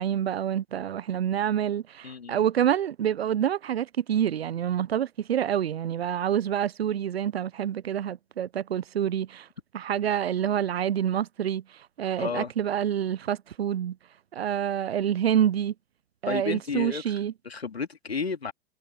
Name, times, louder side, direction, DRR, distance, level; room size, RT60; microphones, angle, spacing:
voice 1, 0.0-9.5 9.7-14.0 14.3-15.7 16.2-17.3, right 10 dB, 80° right, 0.8 m, -27 dB
voice 2, 2.0-2.4 12.2-12.5 16.3-17.2 17.4-18.5, left 5 dB, 90° left, 2.5 m, -32 dB
hypercardioid pair, 90°, 30 cm